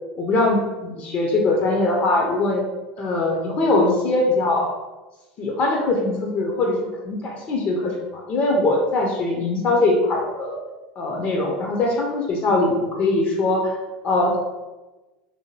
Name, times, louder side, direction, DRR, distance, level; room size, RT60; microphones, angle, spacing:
voice 1, 0.2-2.6 3.0-4.7 5.4-6.8 7.0-10.6 11.0-13.7 14.0-14.4, left 2 dB, 40° left, 0 dB, 0.5 m, -21 dB
2.6 x 2.1 x 3.1 m, 1.1 s
supercardioid pair, 125°, 4 cm